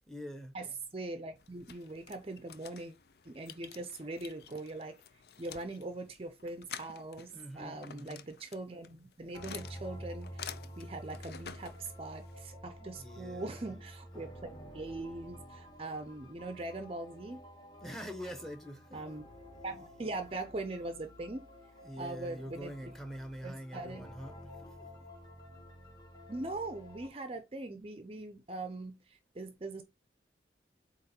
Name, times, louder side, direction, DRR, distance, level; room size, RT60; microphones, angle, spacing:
voice 1, 0.1-0.6 7.3-8.3 12.8-13.7 17.8-19.2 21.8-24.9, equal, ahead, 0.9 m, -45 dB
voice 2, 0.9-2.9 3.3-5.0 5.4-17.4 18.9-19.2 19.6-21.4 22.0-22.9 23.4-24.0 26.3-29.8, right 2 dB, 30° right, 0.5 m, -41 dB
sound 1, 1.4-12.4, left 8 dB, 60° left, 0.5 m, -50 dB
sound 2, 9.3-27.1, equal, 20° left, 1.5 m, -50 dB
7.8 x 3.0 x 4.3 m
head